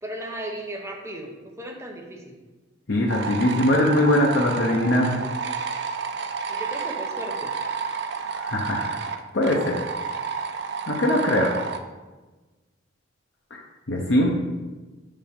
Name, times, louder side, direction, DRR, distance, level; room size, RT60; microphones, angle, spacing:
voice 1, 0.0-2.4 6.5-7.5, right 1 dB, 15° right, 1 dB, 1.0 m, -36 dB
voice 2, 2.9-5.2 8.3-8.9 9.3-9.8 10.9-11.5 13.5-13.6 13.9-14.3, left 1 dB, 70° left, -2 dB, 0.9 m, -21 dB
sound 1, 3.1-11.8, right 5 dB, 60° right, 0.6 m, -30 dB
5.4 x 5.3 x 5.3 m, 1.2 s
head